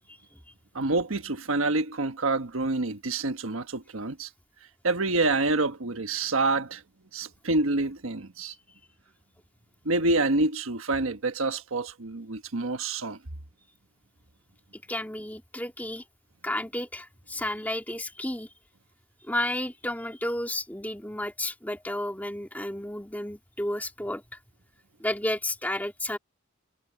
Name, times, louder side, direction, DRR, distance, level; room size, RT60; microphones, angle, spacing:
voice 1, 0.1-0.4 8.4-8.6 14.9-16.0 16.4-18.5 19.2-24.2 25.0-26.2, left 1 dB, 10° left, 2.3 m, -32 dB
voice 2, 0.7-4.3 4.8-6.8 7.1-8.5 9.8-13.2, right 2 dB, 85° right, 1.3 m, -27 dB
head